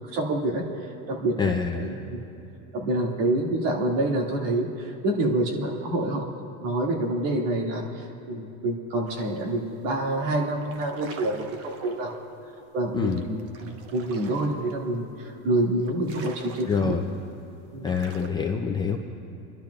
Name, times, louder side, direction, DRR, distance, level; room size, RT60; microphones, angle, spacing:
voice 1, 0.1-2.2 2.7-6.3 6.6-12.2 12.7-17.0 17.7-17.9, right 1 dB, 70° right, 0 dB, 2.1 m, -27 dB
voice 2, 1.4-2.0 12.9-13.2 16.7-17.1 17.8-19.0, left 5 dB, 10° left, 1 dB, 0.4 m, -26 dB
sound 1, 9.1-9.6 9.9-10.1 10.5-18.3, right 4 dB, 40° right, 1.0 m, -45 dB
28.0 x 12.0 x 2.3 m, 3.0 s
supercardioid pair, 135°, 38 cm